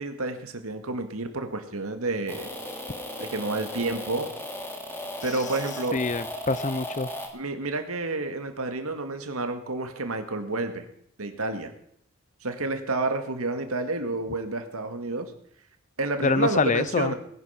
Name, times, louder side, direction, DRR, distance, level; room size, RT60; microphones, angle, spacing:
voice 1, 0.0-2.5 3.2-4.3 5.2-6.0 7.3-10.9 11.2-11.7 12.4-15.3 16.0-17.1, right 2 dB, 80° right, 7 dB, 2.1 m, -30 dB
sound 1, 2.3-7.3, left 1 dB, 10° left, 2.6 m, -36 dB
voice 2, 5.9-7.1 16.2-17.1, left 4 dB, 35° left, 16 dB, 0.6 m, -25 dB
19.5 x 11.0 x 5.8 m, 0.68 s
head